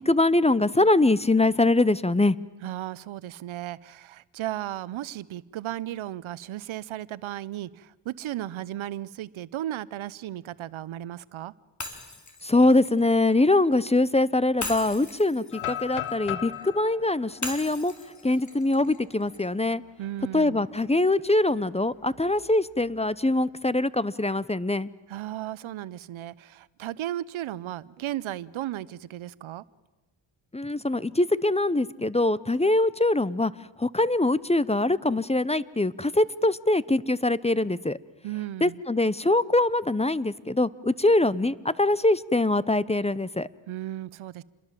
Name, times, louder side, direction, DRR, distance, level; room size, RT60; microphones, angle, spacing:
voice 1, 0.1-2.3 12.4-17.9 18.2-19.8 20.3-24.9 30.5-33.5 33.8-38.0 38.6-43.5, left 2 dB, 15° left, 0.8 m, -23 dB
voice 2, 2.6-11.5 20.0-20.6 25.1-29.6 38.2-38.8 43.7-44.4, right 13 dB, 80° right, 0.8 m, -35 dB
Shatter, 11.8-13.9 14.6-16.7 17.4-19.5, left 2 dB, 35° left, 4.0 m, -39 dB
sound 1, 15.5-19.4 19.9-20.0 20.4-20.8 22.1-22.9, left 12 dB, 80° left, 1.0 m, -38 dB
28.5 x 22.0 x 7.5 m
cardioid pair, 55°, 47 cm